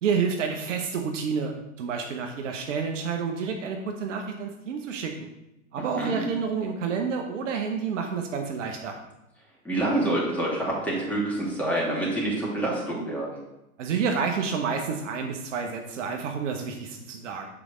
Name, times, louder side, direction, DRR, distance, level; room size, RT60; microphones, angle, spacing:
voice 1, 0.0-5.3 5.7-8.9 13.8-17.5, right 6 dB, 60° right, 3 dB, 1.0 m, -29 dB
voice 2, 5.8-6.2 9.6-13.4, right 1 dB, 5° left, -5 dB, 2.7 m, -27 dB
7.9 x 4.9 x 3.8 m, 0.91 s
hypercardioid pair, 105°, 42 cm